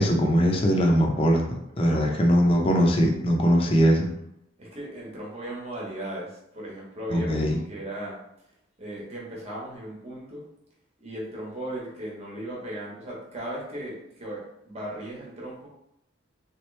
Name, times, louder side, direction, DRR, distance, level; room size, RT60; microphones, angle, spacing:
voice 1, 0.0-4.1 7.1-7.6, equal, 30° left, 1 dB, 0.6 m, -21 dB
voice 2, 1.6-2.6 4.6-8.2 8.8-10.5 11.0-15.7, right 1 dB, 35° right, -4 dB, 1.1 m, -37 dB
3.5 x 3.0 x 3.2 m, 0.80 s
head